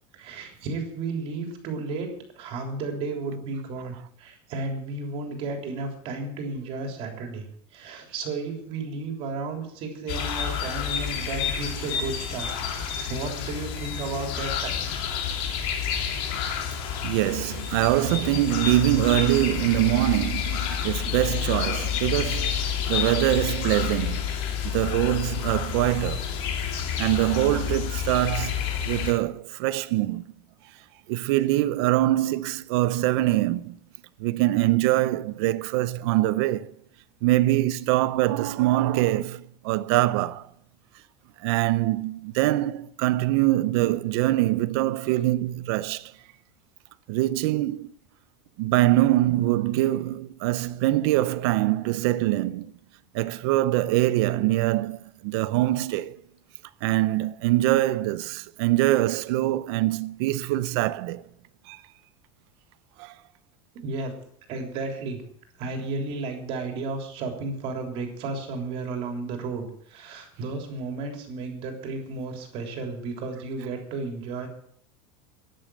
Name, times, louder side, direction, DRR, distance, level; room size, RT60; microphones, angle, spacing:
voice 1, 0.1-2.1 2.4-14.7 63.8-64.1 64.5-65.2 65.6-74.5, right 3 dB, 40° right, 3.5 m, -33 dB
sound 1, 10.1-29.1, left 8 dB, 55° left, 2.8 m, -29 dB
voice 2, 17.0-24.3 24.6-26.3 27.0-30.3 31.1-33.7 34.2-36.7 37.2-40.5 41.4-46.1 47.1-47.9 48.6-52.7 53.1-56.2 56.8-61.2 61.7-61.8 63.0-63.1, right 16 dB, 60° right, 0.7 m, -24 dB
12.0 x 10.5 x 7.7 m
cardioid pair, 175°, 15 cm